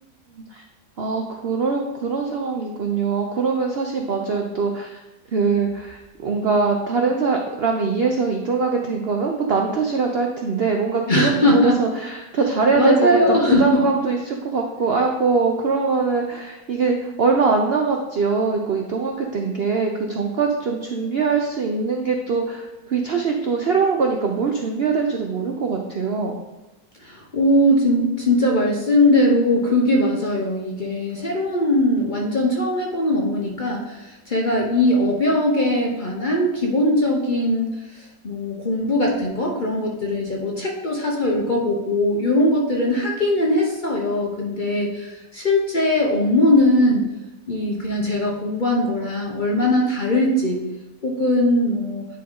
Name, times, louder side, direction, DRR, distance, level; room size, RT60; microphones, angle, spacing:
voice 1, 0.3-0.6 1.0-5.0 5.3-26.4, right 4 dB, 60° right, 2 dB, 0.6 m, -22 dB
voice 2, 11.1-11.8 12.7-13.9 27.0-47.0 47.5-50.6 51.0-52.1, left 1 dB, 40° left, -1 dB, 0.8 m, -20 dB
9.8 x 3.7 x 3.8 m, 1.1 s
omnidirectional pair, 1.7 m